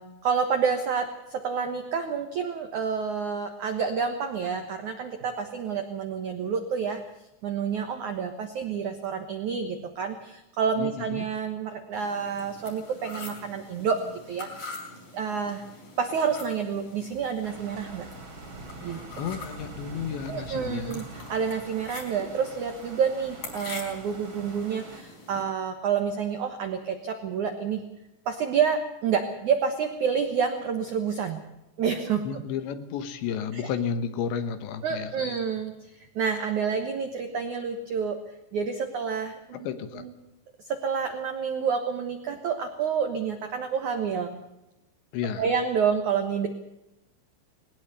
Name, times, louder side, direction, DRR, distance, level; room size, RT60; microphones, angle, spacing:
voice 1, 0.0-7.0 7.4-14.0 14.3-14.5 15.1-15.6 16.0-18.1 18.8-19.0 20.3-27.8 28.3-31.4 31.8-32.4 33.5-33.6 34.8-38.2 38.5-39.4 40.0-40.1 40.7-44.4 45.4-46.5, right 6 dB, 75° right, 6 dB, 1.7 m, -28 dB
voice 2, 10.8-11.3 19.2-21.0 32.2-35.3 39.5-40.1 45.1-45.4, left 7 dB, 70° left, 10 dB, 3.4 m, -32 dB
sound 1, 11.9-25.4, left 3 dB, 45° left, 5.4 m, -44 dB
sound 2, 17.4-25.0, right 3 dB, 30° right, 3.1 m, -44 dB
20.0 x 19.0 x 6.9 m, 0.93 s
omnidirectional pair, 5.6 m